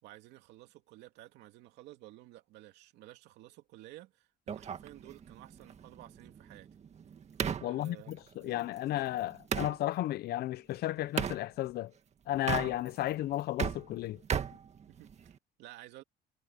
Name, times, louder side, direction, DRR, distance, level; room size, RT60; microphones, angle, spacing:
voice 1, 0.0-6.7 7.6-8.7 14.9-16.0, right 16 dB, 85° right, 2.8 m, -53 dB
sound 1, 4.5-9.8 11.2-11.4 12.3-13.1 13.4-15.4, right 7 dB, 40° right, 1.9 m, -37 dB
voice 2, 7.6-11.9 12.3-14.2, left 14 dB, 70° left, 0.7 m, -34 dB
cardioid pair, 110°, 17 cm